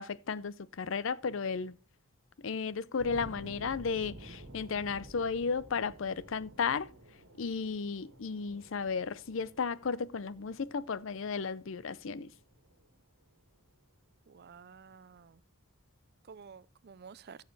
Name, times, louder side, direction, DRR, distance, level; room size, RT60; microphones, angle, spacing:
voice 1, 0.0-1.8 2.4-6.9 7.4-12.3, left 5 dB, 65° left, 0.5 m, -34 dB
sound 1, 3.0-13.8, right 1 dB, 80° right, 1.8 m, -52 dB
voice 2, 14.3-15.4 16.3-17.4, right 6 dB, 50° right, 0.5 m, -51 dB
14.5 x 6.6 x 4.0 m
head